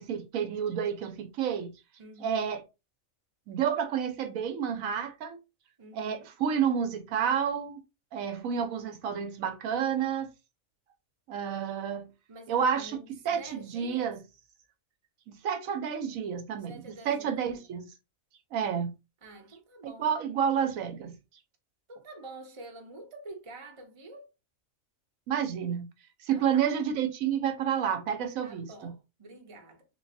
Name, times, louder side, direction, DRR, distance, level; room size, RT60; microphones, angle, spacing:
voice 1, 0.0-1.7 2.2-2.6 3.5-5.4 5.9-7.8 8.1-10.3 11.3-12.1 12.5-13.0 13.2-14.2 15.3-17.9 18.5-18.9 19.8-21.1 25.3-25.9 26.2-28.9, right 8 dB, 80° right, 1.1 m, -30 dB
voice 2, 2.0-2.4 5.8-6.3 12.3-14.2 16.7-17.7 19.2-20.2 21.9-24.3 26.3-26.7 28.4-29.9, right 2 dB, 30° right, 0.6 m, -48 dB
3.8 x 3.1 x 2.6 m
omnidirectional pair, 1.4 m